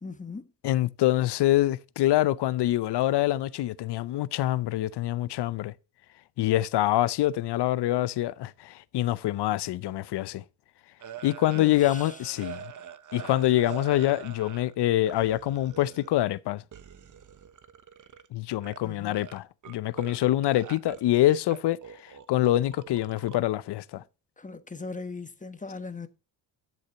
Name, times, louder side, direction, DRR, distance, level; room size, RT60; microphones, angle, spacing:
voice 1, 0.0-0.5 11.5-12.2 18.8-19.2 23.9-24.0 24.4-26.1, left 4 dB, 15° left, 1.1 m, -39 dB
voice 2, 0.6-5.7 6.4-10.4 11.2-12.6 13.1-16.6 18.3-21.8 22.3-24.0, left 14 dB, 55° left, 0.7 m, -25 dB
sound 1, 11.0-14.7 15.1-16.3 16.7-18.3 18.5-18.8 19.1-20.2 20.4-23.4, right 8 dB, 40° right, 1.0 m, -44 dB
11.5 x 6.5 x 3.0 m
hypercardioid pair, 55°, 49 cm